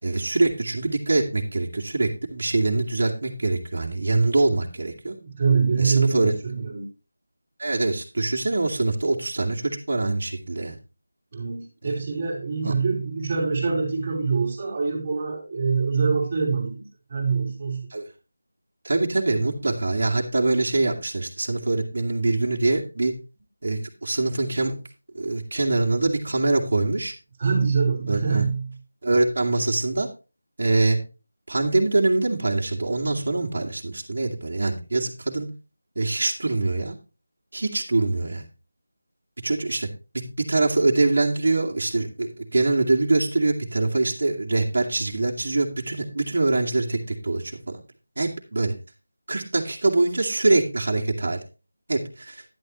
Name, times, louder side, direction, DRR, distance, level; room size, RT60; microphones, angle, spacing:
voice 1, 0.0-5.1 5.8-6.3 7.6-10.8 11.8-11.9 12.6-12.7 17.9-18.1 18.8-23.1 23.6-24.8 25.1-27.1 28.1-28.5 29.0-30.1 30.6-31.0 31.5-35.5 36.0-37.0 37.5-38.4 39.4-39.9 40.4-47.8 48.2-48.7 49.3-51.4 51.9-52.4, right 2 dB, 50° right, -2 dB, 2.2 m, -24 dB
voice 2, 5.2-6.9 11.3-17.9 27.4-28.7, right 5 dB, 25° right, -2 dB, 3.3 m, -24 dB
10.5 x 9.8 x 3.1 m, 0.31 s
figure-of-eight pair, 175°, 0 cm